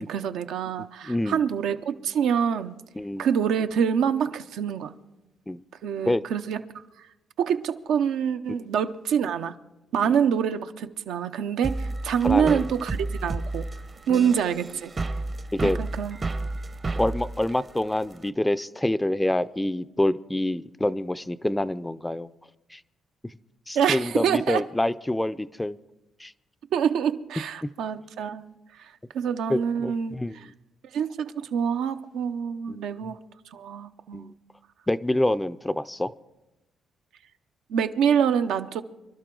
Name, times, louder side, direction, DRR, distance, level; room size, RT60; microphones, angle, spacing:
voice 1, 0.0-2.8 3.2-4.9 5.8-6.6 7.0-7.1 7.4-9.5 9.9-13.6 14.1-14.9 15.6-16.2 23.7-24.6 26.7-30.5 30.9-33.2 33.5-34.3 37.7-38.8, right 7 dB, 80° right, 0.6 m, -26 dB
voice 2, 1.1-1.4 3.0-3.3 5.5-5.6 6.1-6.2 10.0-10.2 12.2-12.6 14.1-14.3 15.5-15.8 17.0-22.3 22.7-22.8 23.7-25.8 26.2-26.3 27.6-27.7 29.5-30.4 32.7-32.8 34.1-34.3 34.9-36.1, left 1 dB, 10° left, 0.4 m, -26 dB
sound 1, 11.6-18.3, right 2 dB, 35° right, 0.7 m, -31 dB
24.0 x 12.0 x 3.8 m
cardioid pair, 90°, 0 cm